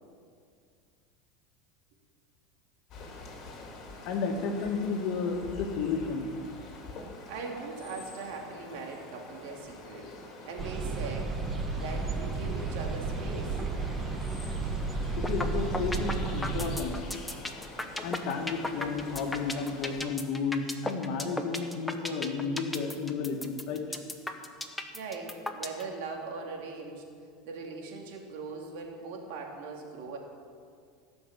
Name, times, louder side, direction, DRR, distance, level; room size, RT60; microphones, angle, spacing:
sound 1, 2.9-20.0, left 3 dB, 45° left, 3.3 m, -46 dB
voice 1, 4.1-6.3 15.2-17.0 18.0-24.0, left 5 dB, 60° left, 4 dB, 1.9 m, -32 dB
voice 2, 7.3-10.1 10.4-11.3 11.7-13.6 24.9-27.0 27.4-30.2, right 4 dB, 70° right, 0 dB, 2.8 m, -40 dB
sound 2, 10.6-16.8, right 4 dB, 25° right, 1.3 m, -33 dB
sound 3, 15.2-15.5 15.7-25.8, left 2 dB, 5° left, 1.1 m, -34 dB
17.0 x 6.3 x 8.3 m, 2.2 s
supercardioid pair, 125°, 0 cm